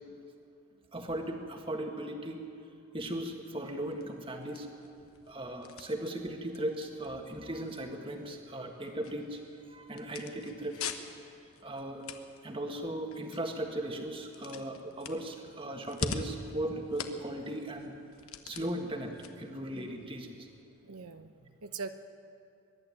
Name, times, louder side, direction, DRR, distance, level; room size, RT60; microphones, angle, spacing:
voice 1, 0.9-2.4 2.9-4.7 5.3-9.4 9.7-10.8 11.6-12.0 12.4-17.9 18.4-20.5, right 1 dB, 25° right, 3 dB, 1.7 m, -37 dB
sound 1, 3.7-20.6, left 4 dB, 70° left, 1.2 m, -45 dB
voice 2, 20.8-21.9, right 4 dB, 85° right, 9 dB, 0.8 m, -42 dB
23.0 x 11.5 x 9.9 m, 2.6 s
head